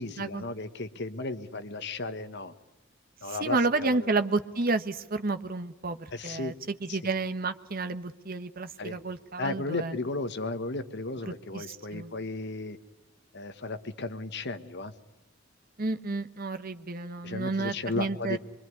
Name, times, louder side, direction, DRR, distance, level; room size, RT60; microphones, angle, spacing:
voice 1, 0.0-2.5 3.2-4.1 6.1-6.5 6.9-7.0 8.8-9.0 9.4-12.8 13.3-14.9 17.2-18.4, left 2 dB, 55° left, 10 dB, 1.4 m, -35 dB
voice 2, 3.3-9.9 11.3-12.1 15.8-18.4, right 3 dB, 45° right, 10 dB, 1.1 m, -31 dB
24.5 x 23.5 x 9.6 m, 0.99 s
head